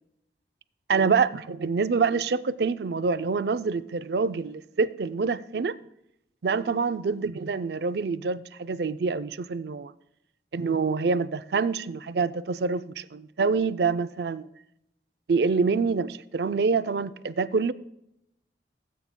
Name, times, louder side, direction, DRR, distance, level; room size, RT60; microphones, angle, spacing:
voice 1, 0.9-5.8 6.4-9.9 10.5-14.5 15.3-17.7, right 5 dB, 70° right, 0.4 m, -26 dB
16.0 x 8.6 x 2.2 m
head